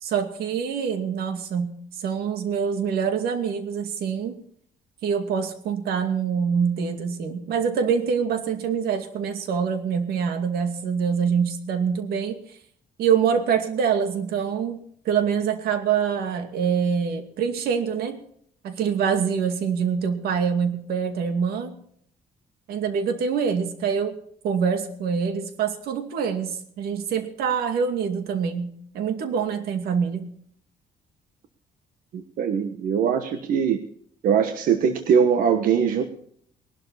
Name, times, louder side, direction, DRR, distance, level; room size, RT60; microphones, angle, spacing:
voice 1, 0.0-4.4 5.0-12.6 13.0-18.2 18.6-21.7 22.7-24.2 24.4-30.3, right 6 dB, 90° right, 7 dB, 2.4 m, -25 dB
voice 2, 32.1-33.8 34.2-36.0, right 7 dB, 65° right, 7 dB, 1.3 m, -21 dB
20.0 x 12.0 x 4.1 m, 0.62 s
cardioid pair, 175°, 16 cm